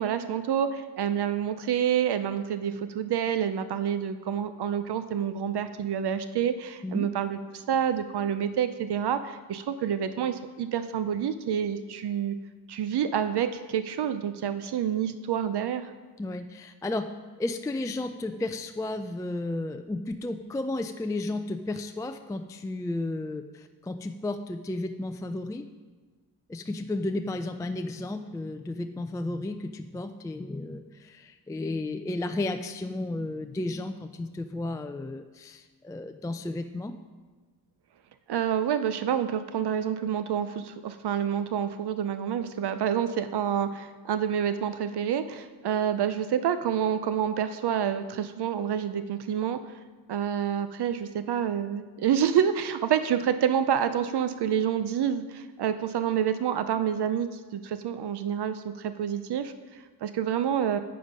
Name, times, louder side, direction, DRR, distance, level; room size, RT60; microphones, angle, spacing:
voice 1, 0.0-12.4 12.7-15.9 38.3-49.6 50.1-60.8, right 9 dB, 70° right, 11 dB, 0.6 m, -28 dB
voice 2, 16.2-17.1 17.4-25.6 26.5-36.9, left 2 dB, 10° left, 7 dB, 0.3 m, -33 dB
8.9 x 8.7 x 5.3 m, 1.4 s
cardioid pair, 95°, 41 cm